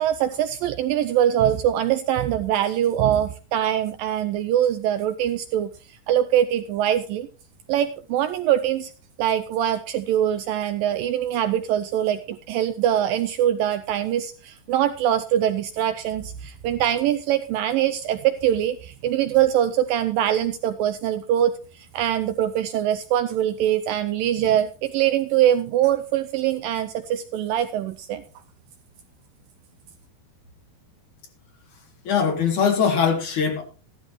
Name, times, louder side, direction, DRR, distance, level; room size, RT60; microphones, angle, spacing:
voice 1, 0.0-5.7 6.1-7.3 7.7-8.9 9.2-28.2, right 11 dB, 80° right, 9 dB, 2.1 m, -23 dB
voice 2, 32.0-33.6, left 6 dB, 55° left, 4 dB, 3.1 m, -21 dB
14.5 x 12.5 x 3.0 m, 0.36 s
omnidirectional pair, 4.5 m